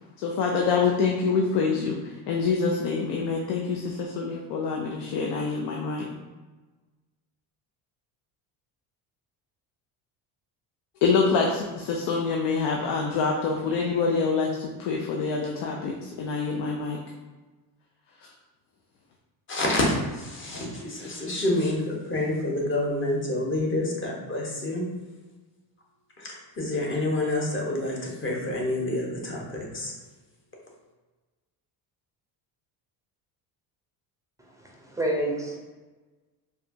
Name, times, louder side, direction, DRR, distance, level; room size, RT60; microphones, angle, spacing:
voice 1, 0.2-6.1 11.0-17.0, left 4 dB, 70° left, 0 dB, 0.6 m, -26 dB
voice 2, 19.5-24.8 26.2-29.9, left 1 dB, 30° left, -2 dB, 1.0 m, -28 dB
voice 3, 34.6-35.6, right 1 dB, 10° right, -2 dB, 0.5 m, -28 dB
4.7 x 2.4 x 2.6 m, 1.2 s
cardioid pair, 110°, 43 cm